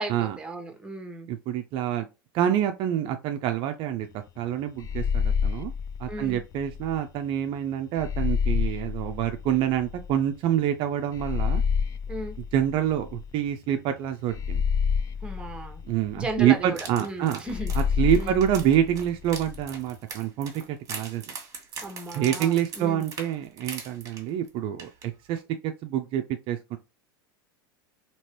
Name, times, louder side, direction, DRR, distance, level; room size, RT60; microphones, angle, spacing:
voice 1, 0.0-1.3 6.1-6.4 12.1-12.3 15.2-15.8 16.2-17.7 18.1-18.4 21.8-23.1, right 2 dB, 10° right, 0.9 m, -35 dB
voice 2, 1.3-2.1 2.3-4.1 4.4-5.7 6.0-11.6 12.5-14.6 15.9-17.4 17.7-21.3 22.2-26.8, right 10 dB, 45° right, 0.4 m, -27 dB
sound 1, 4.8-7.0 8.0-10.1 11.1-13.5 14.3-16.5 17.5-19.6, left 6 dB, 25° left, 0.3 m, -28 dB
sound 2, 16.7-24.5 24.8-25.0 25.4-25.5, right 5 dB, 30° right, 1.2 m, -40 dB
3.0 x 2.9 x 2.9 m
hypercardioid pair, 105°, 12 cm